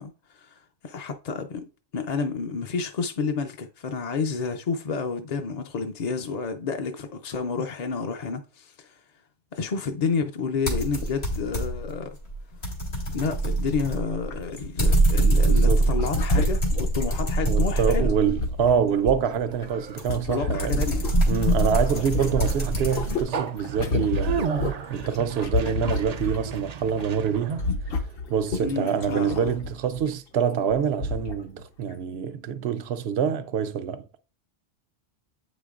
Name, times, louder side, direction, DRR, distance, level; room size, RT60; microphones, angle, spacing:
voice 1, 0.0-9.0 9.5-12.2 13.1-18.1 20.3-21.0 28.6-29.6, left 5 dB, 50° left, 0.5 m, -30 dB
sound 1, 10.7-11.9 12.3-18.5 20.0-23.2, right 1 dB, 85° left, 2.0 m, -24 dB
sound 2, 13.2-13.4 13.7-13.8 14.3-15.2 15.8-17.6 18.1-21.5 21.7-26.6 26.9-27.1 27.4-30.1 30.7-30.8 31.0-31.4 31.9-32.0, left 3 dB, 65° left, 1.0 m, -31 dB
voice 2, 17.4-20.9 21.3-24.5 24.9-27.7 28.3-34.2, right 7 dB, 90° right, 0.9 m, -26 dB
Conversation, 18.2-27.7, right 7 dB, 55° right, 0.5 m, -35 dB
8.2 x 5.1 x 2.4 m
omnidirectional pair, 1.0 m